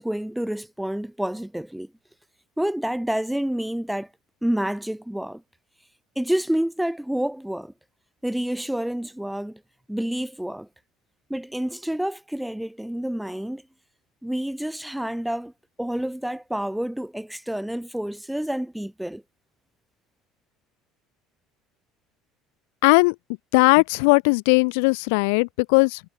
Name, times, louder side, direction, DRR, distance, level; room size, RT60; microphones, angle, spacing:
voice 1, 0.0-1.9 2.6-4.1 4.4-5.4 6.2-7.7 8.2-9.6 9.9-10.7 11.3-13.6 14.2-15.5 15.8-19.2, right 1 dB, 5° right, 2.7 m, -28 dB
voice 2, 22.8-23.1 23.5-26.0, left 31 dB, 75° left, 0.4 m, -18 dB
hypercardioid pair, 70°, 0 cm